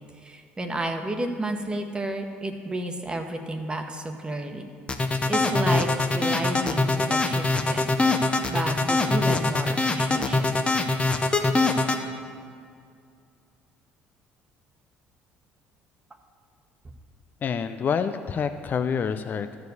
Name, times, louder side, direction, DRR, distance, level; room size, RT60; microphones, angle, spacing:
voice 1, 0.2-4.7 5.3-7.9 8.5-10.5, right 1 dB, 20° right, 5 dB, 1.2 m, -31 dB
sound 1, 4.9-12.0, left 3 dB, 25° left, 0.9 m, -23 dB
voice 2, 17.4-19.5, left 6 dB, 45° left, 9 dB, 0.4 m, -27 dB
12.5 x 4.8 x 8.0 m, 2.3 s
supercardioid pair, 75°, 4 cm